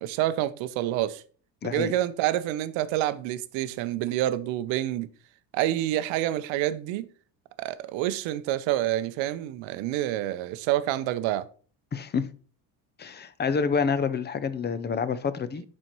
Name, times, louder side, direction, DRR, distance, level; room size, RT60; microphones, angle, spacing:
voice 1, 0.0-1.2 1.6-5.1 5.5-7.1 7.6-11.5, right 13 dB, 85° right, 0.7 m, -28 dB
voice 2, 1.6-1.9 11.9-12.3 13.0-15.6, left 5 dB, 25° left, 0.5 m, -28 dB
11.0 x 4.3 x 3.0 m
cardioid pair, 115°, 44 cm